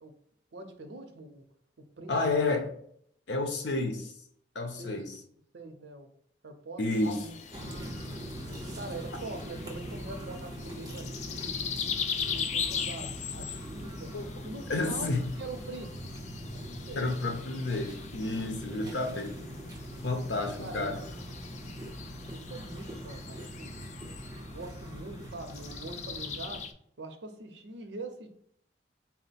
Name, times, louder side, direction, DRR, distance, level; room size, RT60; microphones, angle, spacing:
voice 1, 0.5-1.5 1.8-2.6 4.8-5.1 5.5-6.1 6.4-7.4 7.6-7.8 8.8-11.7 12.3-14.2 14.4-16.2 16.5-17.1 18.7-19.2 20.6-21.1 22.3-23.8 24.3-26.7 27.0-28.3, right 2 dB, 85° right, 0.7 m, -44 dB
voice 2, 2.1-2.7 3.3-4.1 4.5-5.2 6.8-7.3 14.1-14.3 14.7-15.3 17.0-19.3 20.0-21.0, left 2 dB, 85° left, 0.7 m, -30 dB
sound 1, 6.9-26.7, left 7 dB, 40° left, 0.3 m, -40 dB
sound 2, 7.5-26.7, equal, 20° right, 0.7 m, -42 dB
4.2 x 2.1 x 4.1 m
head